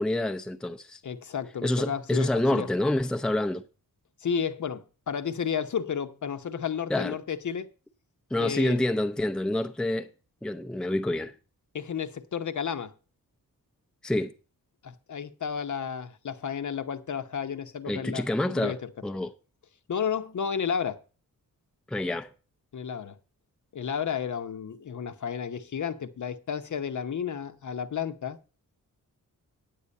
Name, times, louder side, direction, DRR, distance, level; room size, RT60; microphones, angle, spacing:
voice 1, 0.0-1.0 1.6-3.6 6.9-7.1 8.3-10.1 10.4-11.3 14.0-14.3 17.9-18.8 19.0-19.3 21.9-22.3, left 1 dB, ahead, 0.6 m, -27 dB
voice 2, 1.0-2.7 4.2-7.7 8.4-8.8 11.7-12.9 14.8-18.9 19.9-21.0 22.7-23.2 23.7-28.4, left 7 dB, 55° left, 0.8 m, -32 dB
9.3 x 8.5 x 5.3 m
wide cardioid pair, 125°, 35 cm